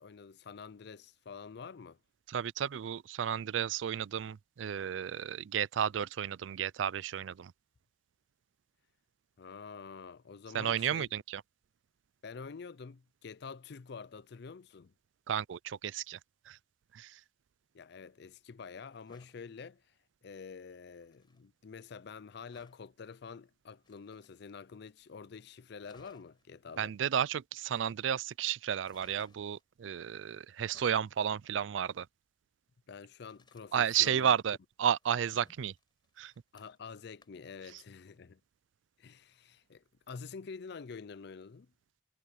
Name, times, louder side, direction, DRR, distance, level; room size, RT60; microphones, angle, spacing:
voice 1, 0.0-2.0 9.4-11.1 12.2-14.9 17.7-19.8 20.2-26.9 32.9-34.4 36.5-38.4 39.0-41.7, left 5 dB, 60° left, 0.5 m, -47 dB
voice 2, 2.3-7.5 10.5-11.4 15.3-16.2 16.5-16.6 16.9-17.2 26.8-32.1 33.7-35.7 36.2-36.3 37.7-37.8, right 9 dB, 90° right, 0.4 m, -32 dB
sound 1, 18.9-19.4 20.9-21.4 22.5-22.9 23.7-24.7 25.1-25.2 25.5-25.6 25.8-26.4 27.5-28.2 28.8-29.6 30.5-31.1 33.3-34.5 34.9-36.9 37.2-37.5 37.9-38.0, left 2 dB, 25° left, 4.8 m, -63 dB
head